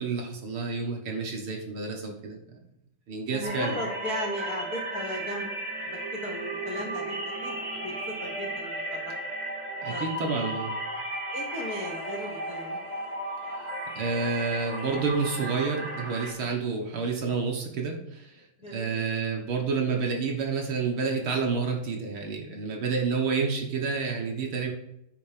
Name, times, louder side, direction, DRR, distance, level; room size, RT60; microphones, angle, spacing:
voice 1, 0.0-2.4 3.1-3.8 9.8-10.8 14.0-18.4 18.7-24.7, right 4 dB, 50° right, 0 dB, 1.7 m, -29 dB
voice 2, 3.3-5.5 6.1-9.2 9.9-10.5 11.3-12.8 18.6-19.1, equal, 85° left, -1 dB, 0.8 m, -37 dB
sound 1, 3.4-16.3, right 1 dB, 30° right, 2.1 m, -35 dB
9.0 x 5.1 x 5.1 m, 0.81 s
omnidirectional pair, 3.7 m